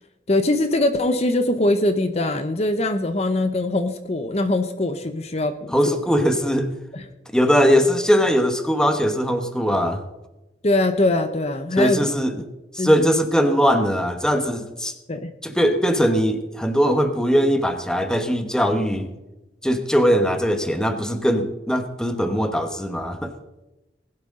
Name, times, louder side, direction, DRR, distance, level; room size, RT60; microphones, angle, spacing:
voice 1, 0.3-6.0 6.9-7.0 10.6-12.0 12.8-13.1 15.1-15.3, left 1 dB, 35° left, 8 dB, 0.8 m, -22 dB
voice 2, 5.7-6.8 7.3-10.0 11.8-12.3 12.7-14.9 15.4-19.1 19.6-23.3, equal, 5° left, 7 dB, 1.1 m, -20 dB
20.0 x 11.5 x 3.8 m, 1.0 s
head